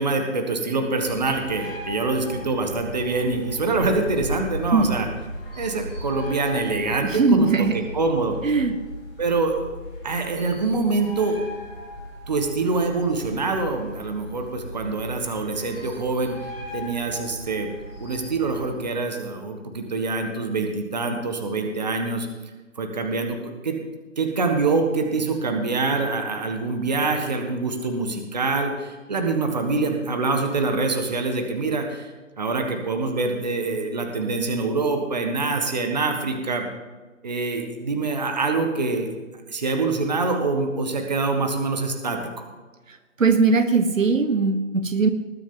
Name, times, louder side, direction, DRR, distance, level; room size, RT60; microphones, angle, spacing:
voice 1, 0.0-5.1 5.6-8.4 9.2-9.7 10.0-11.4 12.3-16.4 16.7-17.7 18.0-22.3 22.8-23.4 23.6-23.8 24.2-32.1 32.4-36.6 37.2-39.1 39.5-42.2, right 3 dB, 35° right, 4 dB, 1.5 m, -25 dB
sound 1, 1.0-18.6, equal, 20° left, 2.9 m, -37 dB
voice 2, 7.0-7.8 8.4-8.8 43.2-45.1, right 4 dB, 75° right, 10 dB, 1.3 m, -20 dB
20.0 x 9.1 x 3.9 m, 1.3 s
figure-of-eight pair, 170°, 39 cm